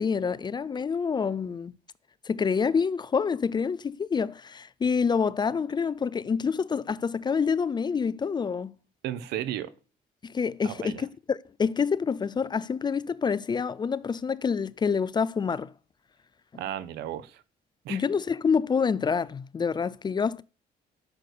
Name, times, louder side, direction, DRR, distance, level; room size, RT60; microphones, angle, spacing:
voice 1, 0.0-1.7 2.3-8.7 10.2-15.7 17.9-20.4, left 6 dB, 25° left, 0.4 m, -27 dB
voice 2, 9.0-9.7 10.6-11.1 16.5-17.4 17.8-18.0, right 11 dB, 80° right, 1.0 m, -34 dB
10.5 x 6.6 x 6.6 m
cardioid pair, 110°, 17 cm